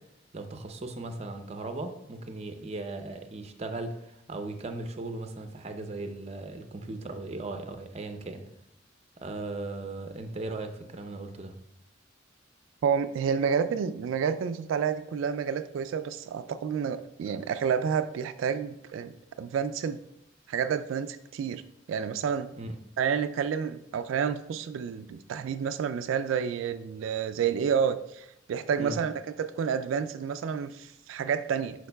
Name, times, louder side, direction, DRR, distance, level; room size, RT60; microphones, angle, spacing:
voice 1, 0.3-8.5 9.2-11.5 22.6-22.7 28.8-29.0, right 2 dB, 35° right, 6 dB, 0.6 m, -37 dB
voice 2, 12.8-19.1 19.4-20.0 20.5-21.6 21.9-22.5 23.0-31.9, right 7 dB, 85° right, 11 dB, 0.3 m, -29 dB
11.0 x 4.6 x 2.3 m, 0.79 s
head